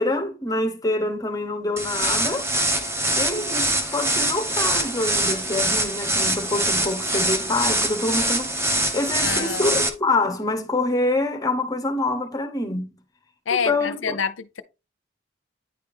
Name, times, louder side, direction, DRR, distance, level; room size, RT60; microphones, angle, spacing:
voice 1, 0.0-2.5 3.2-13.0 13.5-14.0, left 2 dB, 20° left, 0.8 m, -26 dB
sound 1, 1.8-9.9, right 1 dB, 15° right, 0.8 m, -24 dB
voice 2, 9.2-9.7 13.5-14.6, left 6 dB, 80° left, 0.6 m, -27 dB
9.8 x 3.3 x 3.5 m
head